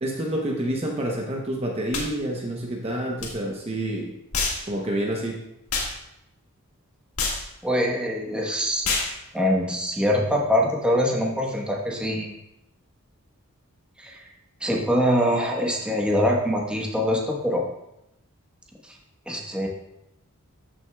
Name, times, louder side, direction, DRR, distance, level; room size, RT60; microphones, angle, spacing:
voice 1, 0.0-4.1 4.7-5.4, right 1 dB, 30° right, 0 dB, 0.8 m, -28 dB
sound 1, 1.9-2.1 3.2-3.3 4.3-4.6 5.7-5.9 7.2-7.4 8.8-9.1, left 4 dB, 70° left, 1.8 m, -26 dB
voice 2, 7.6-8.9 9.3-12.3 14.0-14.2 14.6-17.6 19.3-19.7, equal, 5° right, -2 dB, 1.1 m, -23 dB
14.0 x 6.3 x 2.3 m, 0.85 s
head